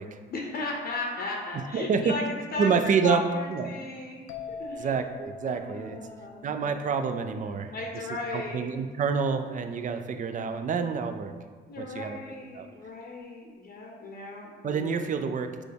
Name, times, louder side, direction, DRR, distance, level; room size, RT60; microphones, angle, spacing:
voice 1, 0.3-2.7 3.0-4.9 5.5-6.5 7.7-8.7 11.7-15.0, left 3 dB, 50° left, -1 dB, 0.7 m, -36 dB
voice 2, 1.5-2.2 2.6-3.2 3.5-3.7 4.7-6.0 6.4-7.7 8.3-11.3 11.8-12.2 12.5-12.7 14.6-15.6, right 6 dB, 40° right, 8 dB, 0.4 m, -28 dB
sound 1, 4.3-7.9, left 3 dB, 85° left, 0.5 m, -44 dB
6.0 x 2.3 x 3.4 m, 1.5 s
cardioid pair, 90°, 20 cm